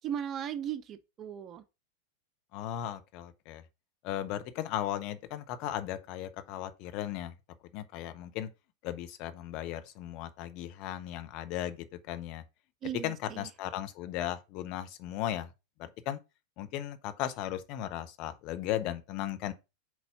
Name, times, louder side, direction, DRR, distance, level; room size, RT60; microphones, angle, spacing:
voice 1, 0.0-1.6 12.8-13.5, right 9 dB, 30° right, 0.6 m, -37 dB
voice 2, 2.5-3.6 4.0-7.3 7.7-8.5 8.8-12.4 13.0-15.5 15.8-16.2 16.6-19.5, left 12 dB, 40° left, 0.7 m, -36 dB
4.6 x 4.1 x 5.5 m
figure-of-eight pair, 90°, 0 cm